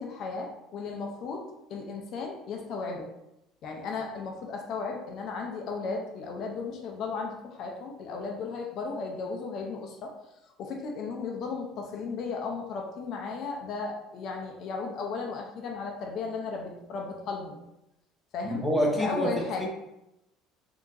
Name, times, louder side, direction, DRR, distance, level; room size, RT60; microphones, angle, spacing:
voice 1, 0.0-3.1 3.6-10.1 10.6-17.6 18.3-18.7 18.9-19.7, left 4 dB, 55° left, 1 dB, 0.6 m, -35 dB
voice 2, 18.4-19.3 19.6-19.7, equal, 10° right, -2 dB, 1.1 m, -26 dB
3.7 x 2.8 x 2.6 m, 0.87 s
hypercardioid pair, 70°, 0 cm